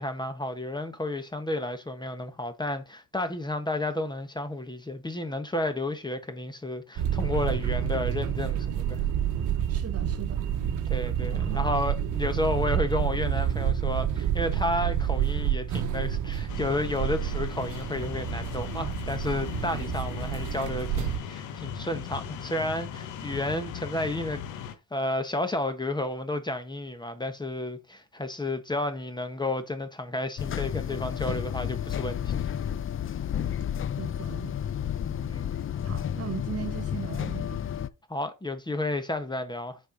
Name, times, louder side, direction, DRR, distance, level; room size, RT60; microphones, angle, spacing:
voice 1, 0.0-9.0 10.9-24.4 24.9-32.4 35.0-35.6 38.1-39.8, left 1 dB, 15° left, 1.2 m, -32 dB
sound 1, 7.0-21.2, right 9 dB, 85° right, 0.9 m, -29 dB
voice 2, 9.7-10.5 11.3-11.7 34.0-34.5 35.8-37.6, right 8 dB, 55° right, 1.4 m, -38 dB
sound 2, 16.5-24.8, left 8 dB, 80° left, 1.0 m, -38 dB
sound 3, 30.4-37.9, left 9 dB, 45° left, 0.5 m, -31 dB
6.6 x 4.5 x 5.0 m
cardioid pair, 90°, 30 cm